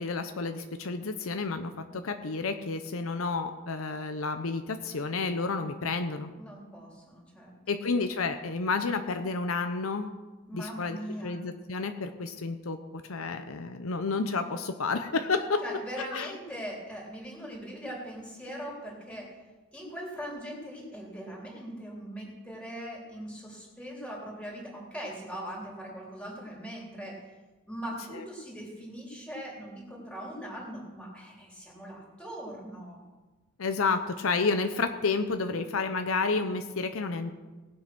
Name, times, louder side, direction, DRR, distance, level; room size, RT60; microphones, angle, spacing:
voice 1, 0.0-6.3 7.7-10.1 10.5-11.0 11.2-15.6 16.1-16.3 33.6-37.3, left 4 dB, 65° left, 8 dB, 0.8 m, -30 dB
voice 2, 6.4-7.8 10.5-11.4 15.6-19.4 19.7-27.2 27.7-33.0, equal, 5° left, -2 dB, 3.3 m, -40 dB
18.0 x 7.8 x 6.0 m, 1.2 s
head